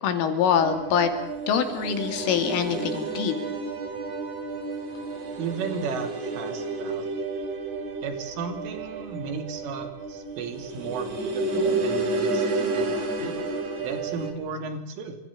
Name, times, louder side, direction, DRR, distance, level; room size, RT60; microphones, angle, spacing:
voice 1, 0.0-1.1 1.5-3.3, left 7 dB, 90° left, 7 dB, 5.3 m, -24 dB
sound 1, 0.6-14.3, right 3 dB, 40° right, 4.5 m, -31 dB
voice 2, 5.4-7.3 8.0-13.3 13.8-15.2, right 5 dB, 85° right, 8 dB, 5.5 m, -35 dB
28.0 x 26.0 x 7.6 m, 0.78 s
omnidirectional pair, 5.6 m